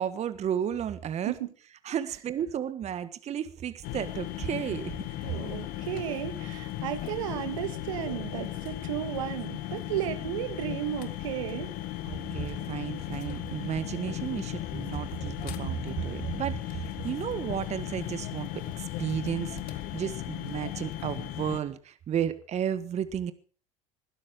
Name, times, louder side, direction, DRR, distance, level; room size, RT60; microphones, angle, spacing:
voice 1, 0.0-1.3 1.8-5.3 12.0-18.5 18.8-23.3, right 9 dB, 40° right, 13 dB, 1.4 m, -33 dB
sound 1, 3.8-21.6, left 14 dB, 60° left, 1.8 m, -36 dB
voice 2, 5.3-11.7, right 12 dB, 75° right, 10 dB, 1.8 m, -34 dB
21.0 x 12.5 x 5.0 m, 0.40 s
hypercardioid pair, 70°, 17 cm